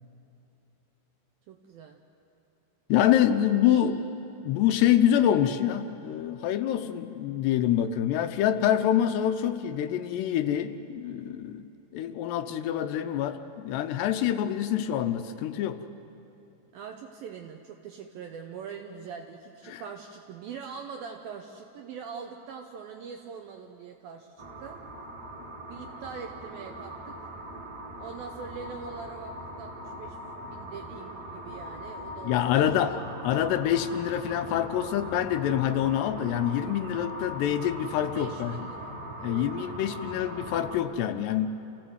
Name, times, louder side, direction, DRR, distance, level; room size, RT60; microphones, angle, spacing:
voice 1, 1.5-2.0 3.6-3.9 16.7-24.8 25.7-27.3 28.0-32.5 32.8-33.0 38.0-40.2, right 6 dB, 80° right, 4 dB, 2.1 m, -43 dB
voice 2, 2.9-4.0 4.4-15.8 19.7-19.8 32.2-33.0 33.2-38.6 39.2-41.5, left 10 dB, 80° left, 9 dB, 2.7 m, -26 dB
sound 1, 24.4-40.8, right 1 dB, 60° right, 1.0 m, -41 dB
28.0 x 16.0 x 7.9 m, 2.9 s
omnidirectional pair, 5.1 m